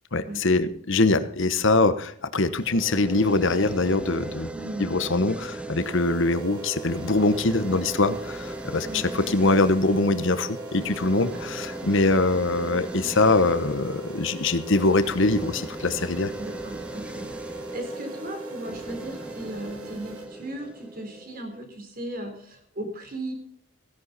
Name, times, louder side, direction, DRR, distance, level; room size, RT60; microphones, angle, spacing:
voice 1, 0.1-4.5 4.8-16.3, left 2 dB, 55° left, 11 dB, 1.1 m, -23 dB
sound 1, 2.5-21.6, right 2 dB, 5° right, 0.9 m, -37 dB
voice 2, 4.5-4.9 8.9-9.1 16.4-17.3 17.7-23.3, right 1 dB, 40° right, 4 dB, 3.8 m, -37 dB
sound 2, 5.8-20.3, right 3 dB, 70° right, 2.2 m, -47 dB
16.5 x 11.0 x 4.2 m, 0.65 s
head